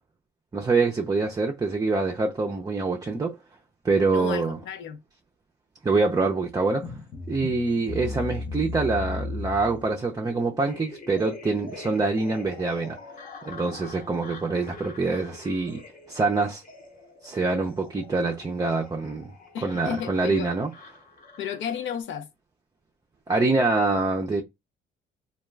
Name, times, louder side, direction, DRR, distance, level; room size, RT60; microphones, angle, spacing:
voice 1, 0.5-3.3 3.8-4.6 5.8-6.9 7.3-13.0 13.4-15.8 16.1-16.6 17.2-19.3 19.6-20.7 23.3-24.4, right 3 dB, 20° right, 0.4 m, -25 dB
voice 2, 4.0-5.0 19.5-20.5 21.4-22.3, left 8 dB, 75° left, 0.6 m, -33 dB
sound 1, 6.8-22.0, left 3 dB, 45° left, 0.8 m, -40 dB
2.2 x 2.2 x 3.2 m
cardioid pair, 90°, 20 cm